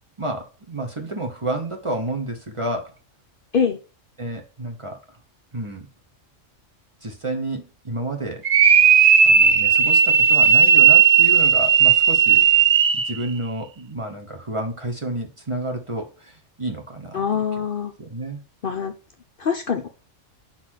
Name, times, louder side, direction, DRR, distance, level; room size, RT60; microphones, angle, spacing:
voice 1, 0.2-2.9 4.2-5.2 5.5-5.9 7.0-8.5 9.2-12.5 12.9-17.2 18.0-18.4, right 2 dB, 25° right, 1.0 m, -30 dB
sound 1, 8.4-13.2, right 7 dB, 55° right, 0.5 m, -15 dB
voice 2, 17.1-17.9 18.6-18.9 19.4-19.9, left 7 dB, 55° left, 0.7 m, -24 dB
5.8 x 4.1 x 6.2 m
omnidirectional pair, 1.3 m